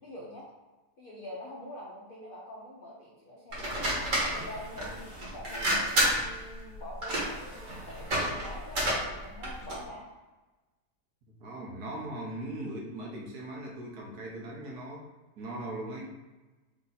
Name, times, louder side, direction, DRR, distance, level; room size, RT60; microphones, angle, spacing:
voice 1, 0.0-0.5 1.0-3.9 4.3-10.0, left 1 dB, 55° left, -5 dB, 0.6 m, -45 dB
sound 1, 3.5-9.9, equal, 55° right, 1.4 m, -31 dB
voice 2, 11.4-15.1 15.4-16.1, right 1 dB, 75° right, -2 dB, 1.4 m, -39 dB
3.6 x 2.7 x 3.9 m, 1.1 s
omnidirectional pair, 1.7 m